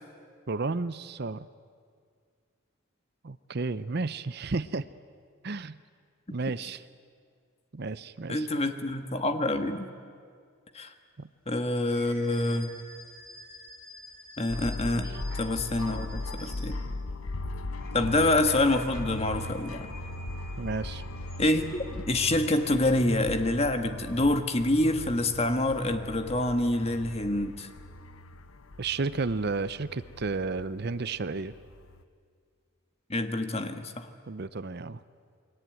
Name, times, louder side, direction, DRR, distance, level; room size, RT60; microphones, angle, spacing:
voice 1, 0.5-1.5 3.2-4.9 5.4-5.8 6.3-6.8 7.7-8.5 11.2-11.3 20.6-21.0 28.8-31.5 34.3-35.0, right 3 dB, 50° right, 15 dB, 0.7 m, -32 dB
voice 2, 8.3-9.9 10.7-10.9 11.5-12.7 14.4-16.8 17.9-19.9 21.4-27.7 33.1-34.1, left 1 dB, 30° left, 7 dB, 1.6 m, -27 dB
sound 1, 11.8-17.1 17.6-21.8, equal, 5° left, 6.8 m, -49 dB
sound 2, 14.5-32.0, left 2 dB, 85° left, 1.0 m, -39 dB
29.0 x 22.0 x 9.2 m, 2.1 s
head